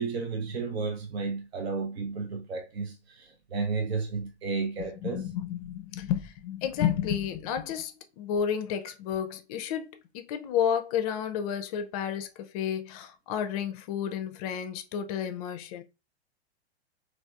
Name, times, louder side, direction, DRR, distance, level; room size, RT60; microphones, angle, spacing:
voice 1, 0.0-5.2, right 4 dB, 70° right, 0.6 m, -32 dB
voice 2, 4.8-15.8, left 9 dB, 35° left, 0.4 m, -31 dB
3.3 x 2.4 x 2.4 m
figure-of-eight pair, 95°, 33 cm